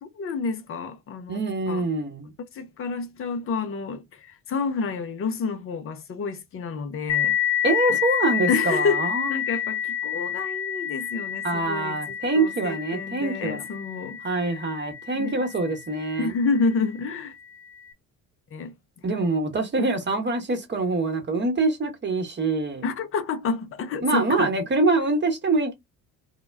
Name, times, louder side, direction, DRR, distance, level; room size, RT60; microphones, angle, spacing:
voice 1, 0.0-1.8 2.4-7.6 7.9-8.0 8.5-14.6 15.1-15.4 16.2-17.3 18.5-19.1 19.8-19.9 22.8-24.5, left 4 dB, 30° left, 0.6 m, -29 dB
voice 2, 1.3-2.3 7.6-9.3 11.4-13.6 14.2-16.3 19.0-22.9 24.0-25.7, right 3 dB, 25° right, 1.0 m, -25 dB
sound 1, 7.1-16.3, left 9 dB, 85° left, 0.5 m, -29 dB
2.1 x 2.1 x 3.3 m
figure-of-eight pair, 60°, 48 cm